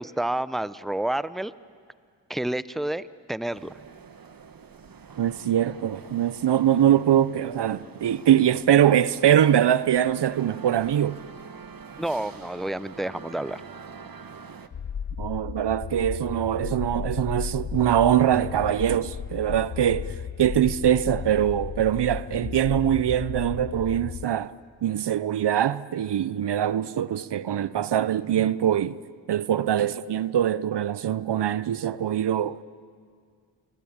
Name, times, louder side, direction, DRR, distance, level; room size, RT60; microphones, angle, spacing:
voice 1, 0.0-1.5 2.3-3.7 12.0-13.6, right 1 dB, ahead, 0.8 m, -29 dB
sound 1, 3.5-14.7, right 5 dB, 50° right, 1.5 m, -45 dB
voice 2, 5.2-11.2 15.2-24.5 24.8-29.0 29.3-32.6, right 10 dB, 65° right, 0.8 m, -23 dB
sound 2, 14.7-24.2, left 7 dB, 50° left, 1.1 m, -34 dB
28.5 x 22.5 x 8.9 m
supercardioid pair, 45°, 44 cm